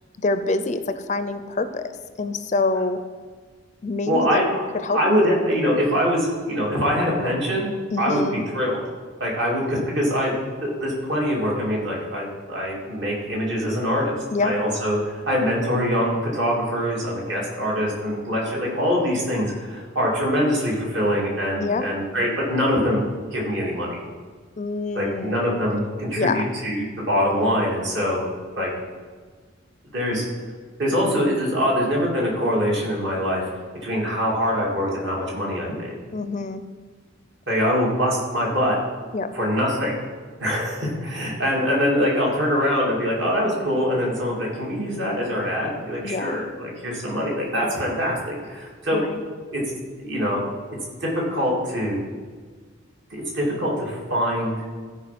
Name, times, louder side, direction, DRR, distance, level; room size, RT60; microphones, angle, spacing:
voice 1, 0.2-3.0 3.8-4.4 4.7-5.3 7.9-8.4 14.3-14.5 21.6-21.9 24.6-25.5 26.2-26.5 36.1-36.6 39.1-39.3 46.0-46.4 48.9-49.2, left 3 dB, 35° left, 10 dB, 0.4 m, -26 dB
voice 2, 4.1-4.6 4.9-7.7 8.0-8.8 9.2-10.3 10.6-23.0 23.3-24.0 24.9-28.2 28.6-28.7 29.9-30.2 30.8-33.5 33.8-35.9 37.5-38.8 39.3-40.0 40.4-49.0 49.5-49.6 50.0-50.4 51.0-52.0 53.1-54.6, equal, 60° right, -3 dB, 2.7 m, -23 dB
13.0 x 4.8 x 6.0 m, 1.5 s
head